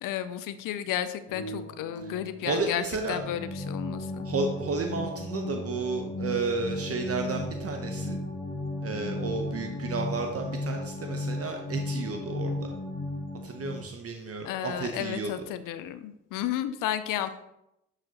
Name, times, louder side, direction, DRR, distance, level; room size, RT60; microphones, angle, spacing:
voice 1, 0.0-4.3 14.4-17.3, left 11 dB, 80° left, 12 dB, 0.5 m, -33 dB
sound 1, 1.3-13.8, left 1 dB, 65° left, 1.4 m, -35 dB
voice 2, 2.4-3.2 4.2-8.2 8.8-12.7 13.4-15.3, right 4 dB, 45° right, 4 dB, 0.8 m, -32 dB
7.5 x 4.8 x 2.8 m, 0.84 s
supercardioid pair, 55°, 32 cm